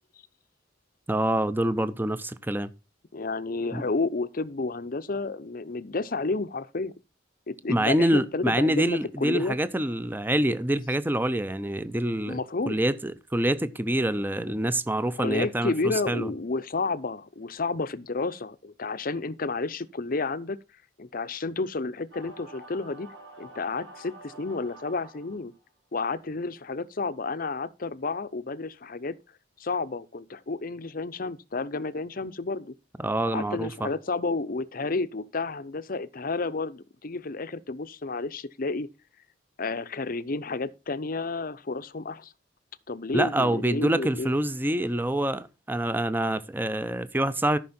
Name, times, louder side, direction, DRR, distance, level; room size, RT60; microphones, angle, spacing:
voice 1, 1.1-2.7 3.7-3.8 7.7-12.4 12.7-16.3 33.0-33.9 43.1-47.6, right 1 dB, 10° right, 0.7 m, -26 dB
voice 2, 3.1-6.9 7.5-9.6 12.2-12.8 15.2-20.6 21.0-23.1 23.4-25.5 25.9-29.2 29.6-32.7 33.3-38.9 39.6-42.3 42.9-44.3, left 3 dB, 45° left, 0.7 m, -31 dB
sound 1, 22.1-25.6, equal, 70° right, 5.3 m, -47 dB
13.5 x 6.1 x 4.3 m
head